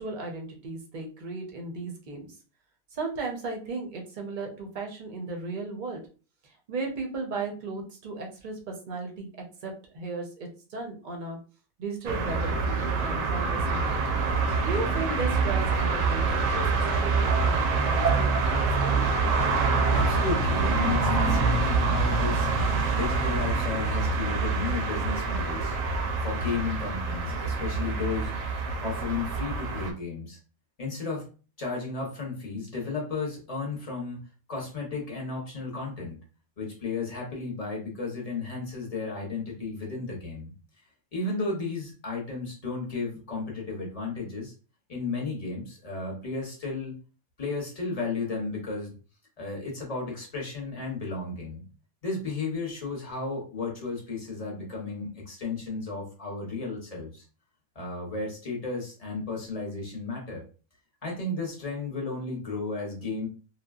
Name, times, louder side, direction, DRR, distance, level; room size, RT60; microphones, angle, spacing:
voice 1, 0.0-2.3 2.9-6.0 6.7-9.3 9.6-11.4 11.8-14.0 14.6-19.0, right 3 dB, 45° right, 1 dB, 0.6 m, -35 dB
sound 1, 12.1-29.9, right 3 dB, 70° right, 0.9 m, -26 dB
voice 2, 19.9-25.8 26.2-28.3 28.8-30.4 30.8-31.3 31.6-34.2 34.5-36.2 36.6-40.5 41.1-44.5 44.9-47.0 47.4-48.9 49.4-51.6 52.0-57.2 57.7-60.4 61.0-63.3, left 3 dB, 35° left, -2 dB, 0.7 m, -33 dB
3.3 x 2.2 x 2.3 m, 0.36 s
omnidirectional pair, 1.5 m